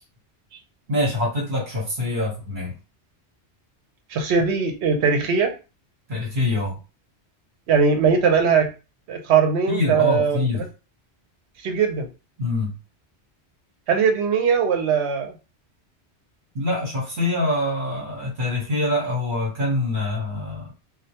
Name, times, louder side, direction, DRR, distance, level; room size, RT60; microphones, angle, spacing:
voice 1, 0.9-2.8 6.1-6.8 9.7-10.6 12.4-12.8 16.5-20.7, left 2 dB, 50° right, -5 dB, 1.1 m, -25 dB
voice 2, 4.1-5.5 7.7-8.7 9.1-10.5 11.6-12.1 13.9-15.3, right 6 dB, 75° right, 5 dB, 0.9 m, -20 dB
2.3 x 2.1 x 2.8 m, 0.31 s
omnidirectional pair, 1.1 m